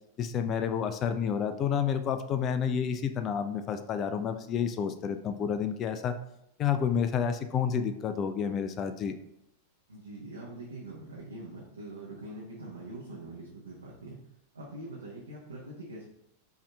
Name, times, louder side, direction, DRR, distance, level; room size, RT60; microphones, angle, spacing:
voice 1, 0.2-6.2 6.6-9.2, left 7 dB, 30° left, 9 dB, 0.3 m, -30 dB
voice 2, 9.9-14.2 14.5-16.1, right 2 dB, 75° right, -5 dB, 0.7 m, -43 dB
5.6 x 2.8 x 2.2 m, 0.81 s
figure-of-eight pair, 90°, 0 cm